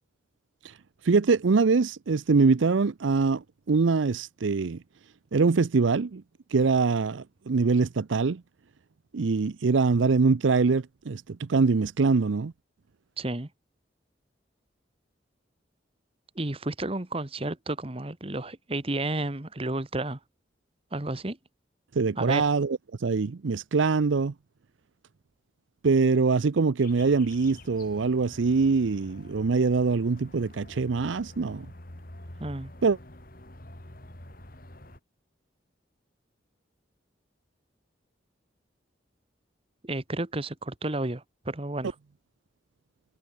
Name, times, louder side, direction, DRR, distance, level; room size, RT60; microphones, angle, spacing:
voice 1, 1.0-4.8 5.3-6.2 6.5-8.4 9.1-12.5 21.9-24.3 25.8-31.7 32.8-33.0, right 4 dB, 85° right, 0.6 m, -24 dB
voice 2, 13.2-13.5 16.3-20.2 20.9-21.4 22.2-22.5 32.4-32.7 39.8-41.9, right 2 dB, 30° right, 1.3 m, -31 dB
sound 1, 26.8-35.0, left 1 dB, 50° left, 2.9 m, -47 dB
head